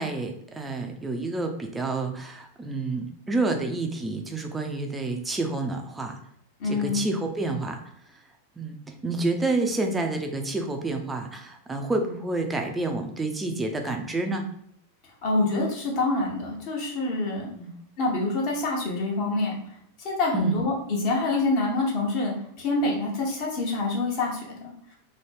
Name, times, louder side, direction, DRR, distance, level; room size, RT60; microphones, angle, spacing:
voice 1, 0.0-6.2 6.6-7.8 8.6-14.4 17.5-17.7 20.3-20.6, right 2 dB, 10° right, 4 dB, 0.5 m, -29 dB
voice 2, 6.6-7.0 15.2-17.5 18.0-19.5 20.0-24.9, left 2 dB, 45° left, -2 dB, 1.0 m, -26 dB
3.0 x 2.2 x 3.3 m, 0.70 s
figure-of-eight pair, 90°, 0 cm